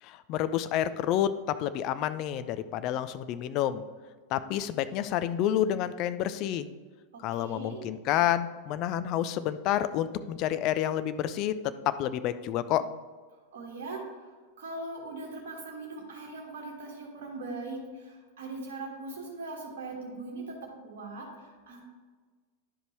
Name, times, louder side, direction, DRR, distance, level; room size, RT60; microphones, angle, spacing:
voice 1, 0.0-3.8 4.3-6.7 7.2-12.8, left 11 dB, 40° left, 13 dB, 0.4 m, -29 dB
voice 2, 7.1-7.8 13.5-14.3 14.6-21.8, right 2 dB, 50° right, -2 dB, 1.5 m, -40 dB
10.5 x 5.1 x 3.2 m, 1.4 s
figure-of-eight pair, 90°, 0 cm